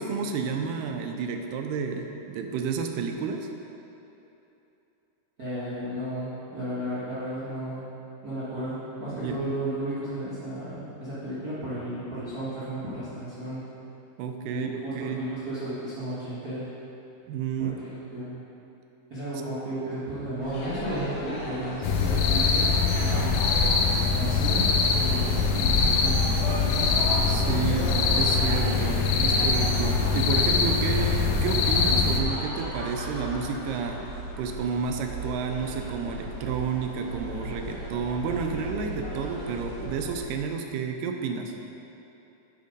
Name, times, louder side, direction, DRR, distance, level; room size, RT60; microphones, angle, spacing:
voice 1, 0.0-3.5 9.1-9.4 14.2-15.2 17.3-17.8 27.3-34.0 34.4-41.5, right 6 dB, 90° right, 4 dB, 2.3 m, -31 dB
voice 2, 5.4-7.8 8.2-13.6 14.5-16.7 17.6-18.4 19.1-23.3 24.1-26.3, right 1 dB, 55° right, -12 dB, 1.0 m, -34 dB
sound 1, 20.4-40.2, right 1 dB, 55° left, 1.2 m, -36 dB
sound 2, 21.8-32.2, left 4 dB, 80° left, 1.7 m, -23 dB
8.3 x 4.5 x 5.2 m, 2.9 s
omnidirectional pair, 3.8 m